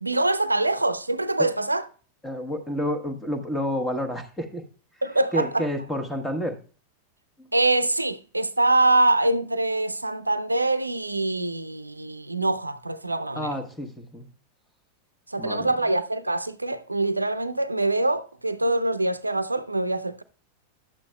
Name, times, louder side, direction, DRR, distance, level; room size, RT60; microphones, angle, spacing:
voice 1, 0.0-1.9 5.0-5.6 7.5-13.5 15.3-20.2, right 2 dB, 85° right, 0.5 m, -24 dB
voice 2, 2.2-4.6 5.3-6.6 7.4-7.5 13.3-14.3 15.4-15.7, equal, 5° left, 1.3 m, -29 dB
11.5 x 8.5 x 2.2 m
figure-of-eight pair, 90°, 0 cm